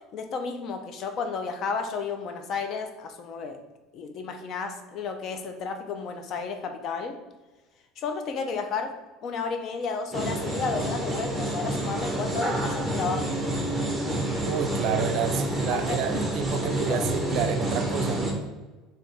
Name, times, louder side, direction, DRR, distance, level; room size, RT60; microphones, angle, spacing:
voice 1, 0.1-3.6 3.9-7.2 8.0-8.9 9.2-13.4 15.7-16.0 16.5-17.1, left 5 dB, 40° left, 6 dB, 0.4 m, -32 dB
sound 1, 10.1-18.3, right 1 dB, 5° right, 0.6 m, -28 dB
voice 2, 14.5-18.3, right 7 dB, 45° right, 7 dB, 0.3 m, -29 dB
3.3 x 2.7 x 4.1 m, 1.2 s
cardioid pair, 170°, 0 cm